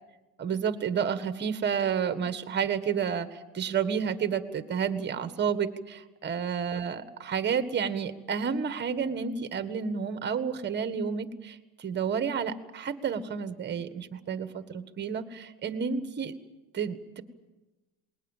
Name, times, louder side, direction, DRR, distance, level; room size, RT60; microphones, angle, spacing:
voice 1, 0.4-16.3 16.7-17.2, right 7 dB, 25° right, 11 dB, 1.6 m, -30 dB
28.0 x 21.0 x 7.4 m, 1.1 s
cardioid pair, 145°, 41 cm